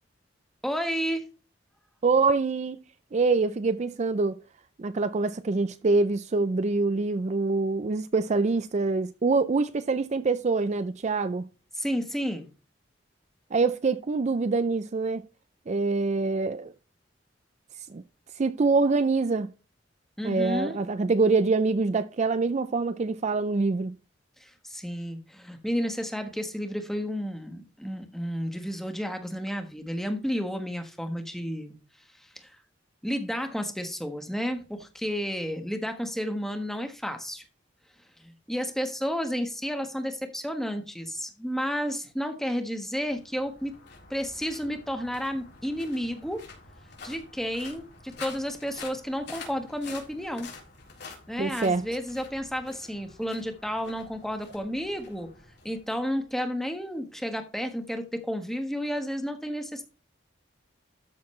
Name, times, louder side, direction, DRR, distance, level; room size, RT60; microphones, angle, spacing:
voice 1, 0.6-1.3 11.7-12.5 20.2-20.8 24.4-31.7 32.3-32.5 33.0-37.4 38.2-43.7 44.1-46.4 47.0-50.5 51.3-55.3 55.6-59.8, equal, ahead, 1.2 m, -31 dB
voice 2, 2.0-2.8 3.1-4.4 4.8-11.5 13.5-15.2 15.7-16.7 17.9-18.0 18.4-19.5 20.2-24.0 51.4-51.9, right 3 dB, 35° right, 0.4 m, -25 dB
sound 1, 42.9-56.3, left 4 dB, 60° left, 4.0 m, -47 dB
13.0 x 6.1 x 3.2 m
head